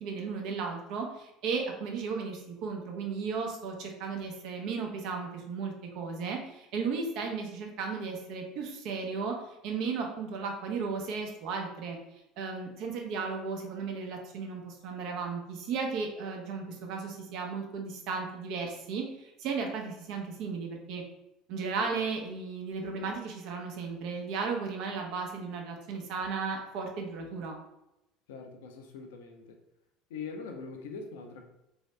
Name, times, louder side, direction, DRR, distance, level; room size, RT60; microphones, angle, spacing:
voice 1, 0.0-9.3 9.6-12.0 12.4-21.0 21.5-27.6, right 5 dB, 65° right, 2 dB, 0.7 m, -35 dB
voice 2, 28.3-29.6 30.1-31.4, left 4 dB, 75° left, 3 dB, 0.5 m, -42 dB
3.0 x 2.7 x 3.2 m, 0.89 s
hypercardioid pair, 70°, 0 cm